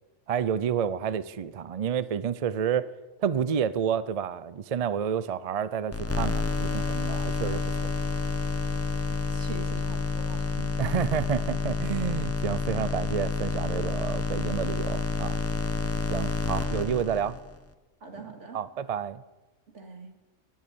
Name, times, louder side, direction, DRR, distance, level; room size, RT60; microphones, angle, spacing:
voice 1, 0.3-2.9 3.2-7.9 10.8-15.4 16.1-17.4 18.2-19.2, right 8 dB, 50° right, 0.4 m, -30 dB
sound 1, 5.9-17.6, left 4 dB, 15° left, 0.6 m, -29 dB
voice 2, 8.6-10.7 18.0-18.6 19.7-20.1, right 3 dB, 70° right, 2.4 m, -44 dB
19.5 x 7.4 x 10.0 m
omnidirectional pair, 1.3 m